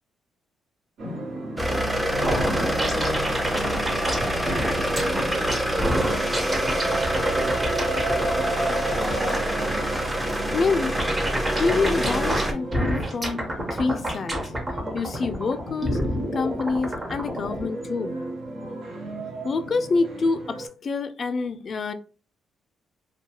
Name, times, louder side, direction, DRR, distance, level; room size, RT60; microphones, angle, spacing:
sound 1, 1.0-20.7, right 1 dB, 70° right, 1.1 m, -34 dB
sound 2, 1.6-12.5, right 1 dB, 5° right, 0.5 m, -26 dB
sound 3, 2.2-17.7, equal, 25° right, 0.9 m, -28 dB
voice 1, 10.5-11.0 11.4-14.4 14.9-16.0 16.3-18.1 19.4-21.9, left 4 dB, 45° left, 10 dB, 0.3 m, -27 dB
2.3 x 2.3 x 2.8 m, 0.37 s
cardioid pair, 90°, 0 cm